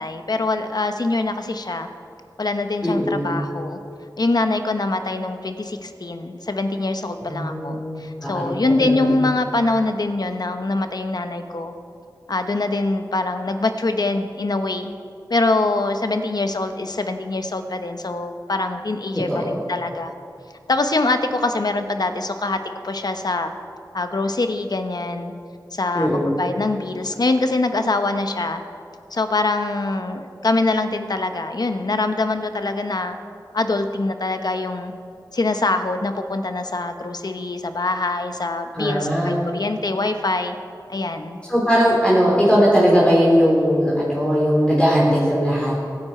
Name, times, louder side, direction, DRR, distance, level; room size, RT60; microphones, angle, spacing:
voice 1, 0.0-1.9 2.4-3.8 4.2-11.7 12.3-14.9 15.3-20.1 20.7-22.6 22.8-23.5 23.9-25.3 25.7-28.6 29.1-33.2 33.5-34.9 35.3-40.5 40.9-41.4, left 2 dB, 65° left, 7 dB, 1.0 m, -24 dB
voice 2, 2.8-3.4 7.2-8.5 8.8-9.1 19.1-19.6 25.9-26.3 38.7-39.5 41.5-45.7, equal, 15° left, -6 dB, 3.4 m, -19 dB
24.0 x 9.8 x 4.5 m, 2.5 s
wide cardioid pair, 70°, 8 cm